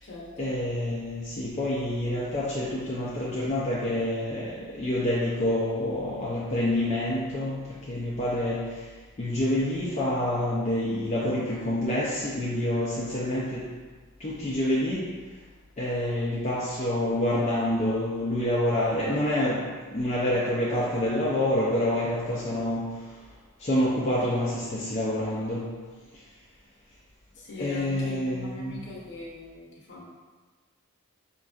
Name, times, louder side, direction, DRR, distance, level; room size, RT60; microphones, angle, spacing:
voice 1, 0.4-13.7 14.2-15.2 15.8-23.3 23.6-25.8 26.1-26.2 27.6-28.8, left 1 dB, 30° left, -7 dB, 0.4 m, -27 dB
voice 2, 27.3-30.0, left 3 dB, 50° left, -3 dB, 0.7 m, -41 dB
5.1 x 2.5 x 2.3 m, 1.4 s
head